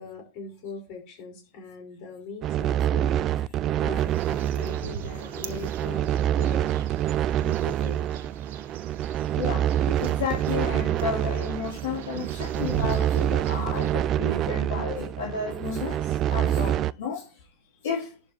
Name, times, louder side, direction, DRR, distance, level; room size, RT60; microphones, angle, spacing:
voice 1, 0.0-3.5 3.8-6.6 7.4-8.2, left 4 dB, 45° left, 5.4 m, -41 dB
sound 1, 2.4-16.9, right 11 dB, 35° right, 0.4 m, -26 dB
sound 2, 4.0-13.9, right 8 dB, 65° right, 1.5 m, -41 dB
voice 2, 9.4-17.3 17.8-18.1, left 5 dB, 65° left, 2.9 m, -32 dB
11.5 x 4.7 x 4.4 m
hypercardioid pair, 105°, 0 cm